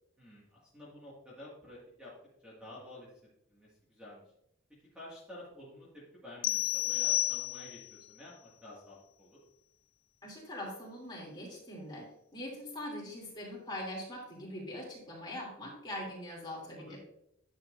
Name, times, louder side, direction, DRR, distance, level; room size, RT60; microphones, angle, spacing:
voice 1, 0.2-2.1 2.4-3.1 3.5-4.2 4.9-5.9 6.1-9.4 16.8-17.0, left 1 dB, 5° right, -7 dB, 1.9 m, -50 dB
sound 1, 6.4-8.0, left 16 dB, 70° left, 0.4 m, -31 dB
voice 2, 10.2-17.0, left 1 dB, 20° left, -3 dB, 2.8 m, -42 dB
10.5 x 7.4 x 2.6 m, 0.78 s
head